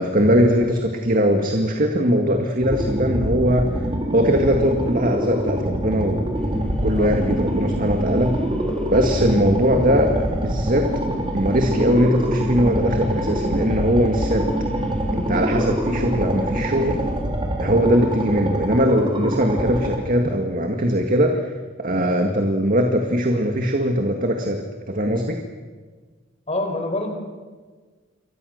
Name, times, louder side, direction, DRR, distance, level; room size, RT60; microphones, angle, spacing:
voice 1, 0.0-3.7 4.1-6.3 6.8-8.4 8.9-14.5 15.1-17.0 17.6-21.5 21.8-25.4, equal, 45° right, 3 dB, 2.0 m, -20 dB
chopper threw a wall of glass, 2.6-20.0, equal, 25° right, 3.7 m, -26 dB
sound 1, 6.3-17.2, equal, 5° left, 2.2 m, -30 dB
voice 2, 26.5-27.1, left 2 dB, 30° left, 5 dB, 4.6 m, -26 dB
28.5 x 23.0 x 6.6 m, 1.4 s
head